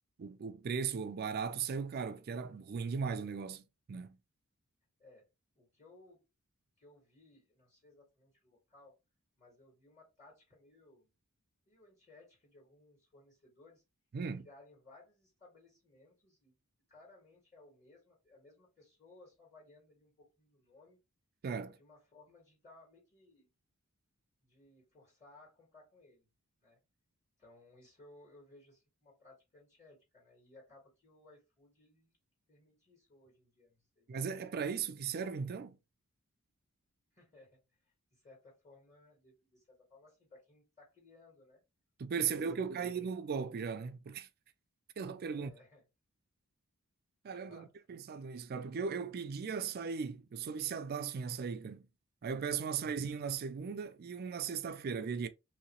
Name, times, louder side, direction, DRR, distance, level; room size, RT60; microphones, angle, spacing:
voice 1, 0.2-4.2 14.1-14.5 21.4-21.8 34.1-35.8 42.0-44.3 45.0-45.5 47.2-51.9 52.2-55.3, right 6 dB, 45° right, 0.4 m, -37 dB
voice 2, 5.6-6.2 6.8-8.9 9.4-11.1 11.7-13.8 14.4-16.5 16.9-21.0 21.8-23.5 24.4-26.3 26.6-26.8 27.4-32.2 32.5-34.1 37.1-37.6 38.1-41.6 42.2-42.8 45.3-45.8 47.3-47.7, left 2 dB, 35° left, 1.6 m, -61 dB
3.0 x 2.8 x 3.0 m
head